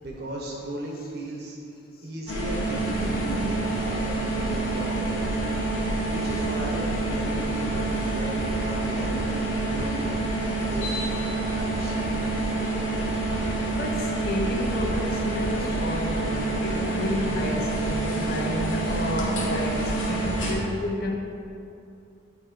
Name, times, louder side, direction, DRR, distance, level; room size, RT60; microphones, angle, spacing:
voice 1, 0.0-1.6 2.0-5.1 6.1-10.2 10.7-11.9, right 1 dB, 55° right, -2 dB, 1.0 m, -36 dB
sound 1, 2.3-20.5, right 2 dB, 85° left, 1.1 m, -27 dB
voice 2, 13.7-21.2, left 1 dB, 50° left, 0 dB, 0.7 m, -31 dB
8.9 x 3.0 x 4.4 m, 2.6 s
head